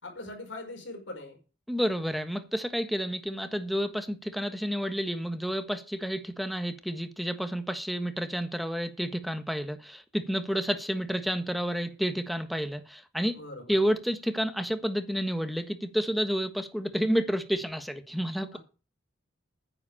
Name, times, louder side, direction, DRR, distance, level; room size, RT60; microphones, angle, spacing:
voice 1, 0.0-1.4 13.4-13.8 18.5-18.6, left 2 dB, 75° left, 5.4 m, -41 dB
voice 2, 1.7-13.4 13.7-18.6, equal, ahead, 1.3 m, -30 dB
9.8 x 8.0 x 8.7 m
head